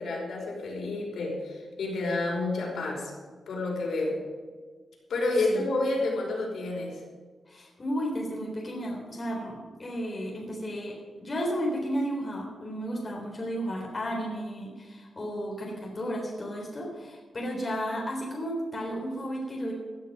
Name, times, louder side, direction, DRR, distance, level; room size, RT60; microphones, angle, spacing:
voice 1, 0.0-3.1 3.5-4.2 5.1-7.0, left 2 dB, 75° left, -2 dB, 5.5 m, -29 dB
voice 2, 7.5-19.7, equal, 25° left, -2 dB, 3.8 m, -33 dB
17.5 x 12.0 x 5.4 m, 1.5 s
wide cardioid pair, 140°, 0 cm